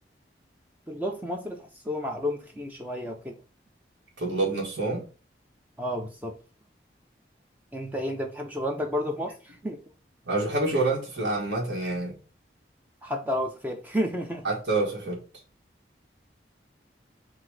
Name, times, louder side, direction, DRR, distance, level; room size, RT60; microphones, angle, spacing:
voice 1, 0.9-3.4 5.8-6.4 7.7-9.8 10.7-10.8 13.0-14.5, equal, 10° right, 0.4 m, -31 dB
voice 2, 4.2-5.0 10.2-12.2 14.4-15.2, right 2 dB, 80° right, 1.6 m, -27 dB
3.9 x 2.6 x 4.6 m
head